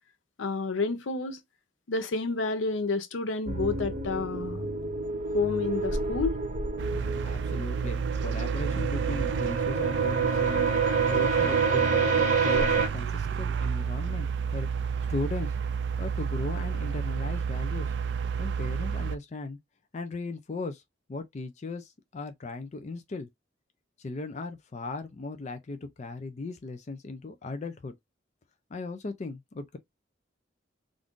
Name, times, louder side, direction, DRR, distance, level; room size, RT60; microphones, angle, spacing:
voice 1, 0.4-1.4 1.9-4.7 5.3-6.3, left 3 dB, 85° left, 0.6 m, -30 dB
sound 1, 3.5-12.9, right 5 dB, 40° right, 0.8 m, -27 dB
sound 2, 6.8-19.2, right 6 dB, 65° right, 0.3 m, -31 dB
voice 2, 7.2-10.7 11.1-15.5 16.0-17.9 18.4-19.6 19.9-20.8 21.1-23.3 24.0-27.9 28.7-29.8, left 3 dB, 35° left, 0.4 m, -37 dB
2.5 x 2.5 x 3.6 m
head